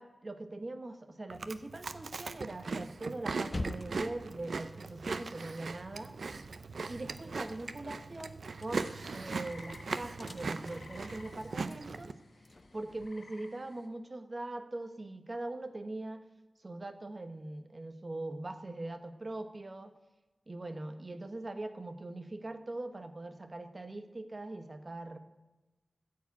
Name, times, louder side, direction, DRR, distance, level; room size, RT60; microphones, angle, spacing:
voice 1, 0.0-6.1 6.9-12.1 12.7-16.2 16.6-19.9 20.5-25.2, right 2 dB, 45° right, 8 dB, 1.0 m, -41 dB
Chewing mastication, 1.3-12.1, right 4 dB, 85° right, 0.5 m, -39 dB
sound 1, 3.4-6.4 6.7-13.1, left 2 dB, 45° left, 0.7 m, -47 dB
sound 2, 8.7-13.9, left 3 dB, 90° left, 1.3 m, -55 dB
13.5 x 4.8 x 8.4 m, 1.1 s
cardioid pair, 50°, 0 cm